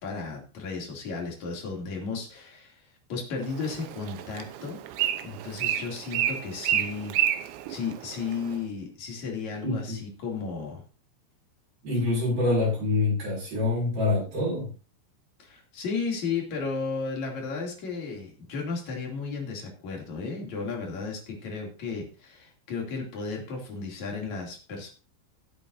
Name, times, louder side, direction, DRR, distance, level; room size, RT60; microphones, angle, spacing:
voice 1, 0.0-4.8 5.2-7.1 7.7-10.8 15.4-24.9, left 4 dB, 40° left, 0 dB, 3.4 m, -34 dB
Bird, 3.4-8.6, right 11 dB, 85° right, 3.6 m, -30 dB
voice 2, 9.6-9.9 11.8-14.7, left 2 dB, 50° right, -8 dB, 7.9 m, -26 dB
17.5 x 8.1 x 2.7 m, 0.36 s
omnidirectional pair, 5.8 m